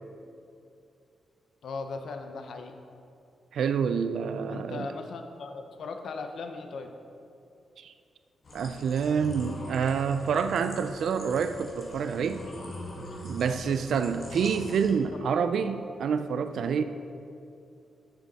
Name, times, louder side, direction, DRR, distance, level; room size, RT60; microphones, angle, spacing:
voice 1, 1.6-2.7 4.5-6.9 15.1-15.5, left 4 dB, 65° left, 5 dB, 0.7 m, -38 dB
voice 2, 3.5-4.9 7.8-7.9 8.5-12.4 13.2-16.8, right 6 dB, 75° right, 10 dB, 0.3 m, -27 dB
sound 1, 8.4-14.9, left 1 dB, 45° left, 1.5 m, -42 dB
9.6 x 6.3 x 4.1 m, 2.6 s
wide cardioid pair, 140°, 0 cm